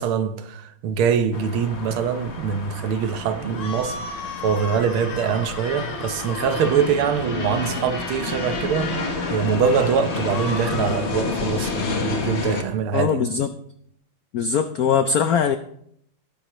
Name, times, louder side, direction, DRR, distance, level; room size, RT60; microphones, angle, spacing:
voice 1, 0.0-4.0 4.4-13.2, right 7 dB, 85° right, 1.8 m, -23 dB
sound 1, 1.3-12.6, left 4 dB, 40° left, 1.3 m, -29 dB
sound 2, 3.5-6.9 10.2-11.0, left 4 dB, 65° left, 1.9 m, -35 dB
voice 2, 12.9-13.5 14.3-15.6, left 7 dB, 80° left, 0.8 m, -21 dB
18.0 x 9.6 x 3.0 m
omnidirectional pair, 2.3 m